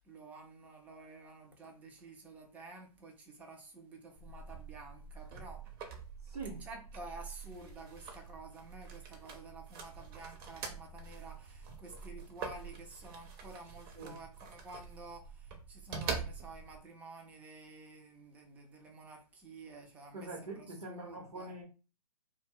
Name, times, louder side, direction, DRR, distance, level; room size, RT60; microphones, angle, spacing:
voice 1, 0.0-5.6 6.6-21.5, right 2 dB, 10° right, 0.3 m, -51 dB
sound 1, 4.2-16.8, right 5 dB, 35° right, 0.7 m, -45 dB
voice 2, 6.2-6.6 13.9-14.2 20.1-21.6, right 3 dB, 80° right, 0.9 m, -44 dB
2.1 x 2.1 x 3.5 m
hypercardioid pair, 130°, 20 cm